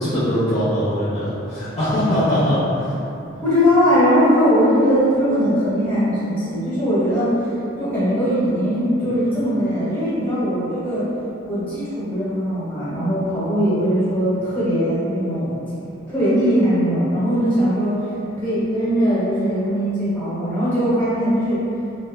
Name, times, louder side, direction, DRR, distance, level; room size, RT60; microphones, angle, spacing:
voice 1, 0.0-2.9, equal, 35° left, -12 dB, 0.4 m, -21 dB
voice 2, 3.4-7.3 7.8-11.1 11.5-15.5 16.1-18.0 18.4-21.6, equal, 10° left, -12 dB, 0.9 m, -20 dB
3.1 x 2.1 x 2.2 m, 2.8 s
head